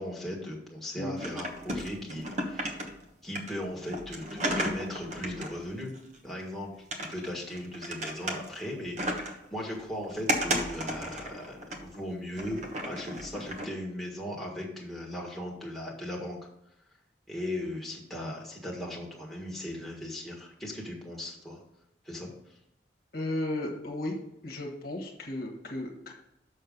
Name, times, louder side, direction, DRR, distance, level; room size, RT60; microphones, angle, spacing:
voice 1, 0.0-2.9 3.2-5.9 6.2-16.4 17.3-21.6 22.0-22.3, left 1 dB, ahead, -3 dB, 1.6 m, -38 dB
sound 1, 1.2-3.0 3.4-6.5 6.9-8.7 9.0-9.5 9.8-12.0 12.4-13.7, right 1 dB, 40° right, 1.1 m, -34 dB
voice 2, 23.1-24.2 24.4-26.1, left 1 dB, 55° left, 1 dB, 1.4 m, -34 dB
6.5 x 6.4 x 5.3 m, 0.81 s
head